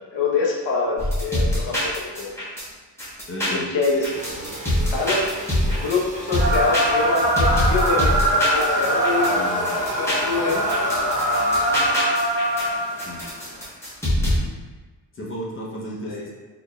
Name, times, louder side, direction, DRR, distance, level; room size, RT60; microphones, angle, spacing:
voice 1, 0.0-2.3 3.5-4.2 4.9-5.3 5.7-10.7 16.0-16.3, left 4 dB, 70° left, -3 dB, 0.8 m, -25 dB
sound 1, 1.0-2.6 3.0-6.0 6.3-9.3 9.6-12.7 13.0-14.4, left 1 dB, 5° left, 0.9 m, -24 dB
voice 2, 3.3-3.7 9.3-9.7 13.0-13.3 14.4-14.6 15.1-16.3, equal, 30° left, -3 dB, 0.7 m, -33 dB
sound 2, 4.1-12.0, right 2 dB, 15° right, 0.5 m, -36 dB
sound 3, 6.4-13.6, right 1 dB, 60° right, 1.3 m, -22 dB
3.9 x 3.2 x 2.2 m, 1.3 s
wide cardioid pair, 135°, 44 cm